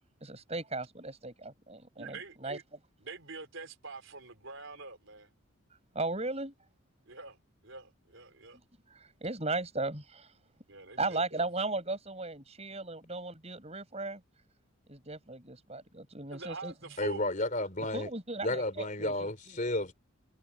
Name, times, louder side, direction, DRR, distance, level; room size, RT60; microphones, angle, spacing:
voice 1, 0.2-2.6 5.9-6.5 8.9-10.3 11.0-14.2 14.9-16.7 17.9-19.6, right 3 dB, 30° right, 7.6 m, -36 dB
voice 2, 2.0-2.6 3.0-5.3 7.1-7.4 7.6-8.6 10.7-11.4 16.3-17.3, right 3 dB, 60° right, 4.5 m, -45 dB
voice 3, 17.0-18.1 18.4-20.0, left 1 dB, 35° left, 3.8 m, -32 dB
head